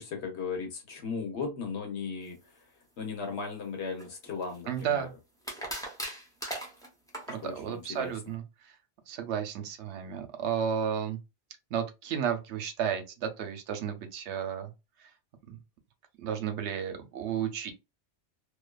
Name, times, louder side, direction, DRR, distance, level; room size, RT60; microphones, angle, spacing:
voice 1, 0.0-2.6 3.0-5.1 7.4-8.3, left 5 dB, 75° left, 1.2 m, -37 dB
sound 1, 4.0-4.8 5.4-7.4, right 1 dB, 5° left, 0.5 m, -38 dB
voice 2, 4.7-5.1 7.3-8.4 9.1-11.2 11.7-14.7 15.5-15.6 16.2-17.7, right 8 dB, 80° right, 0.9 m, -32 dB
2.5 x 2.4 x 2.2 m
omnidirectional pair, 1.2 m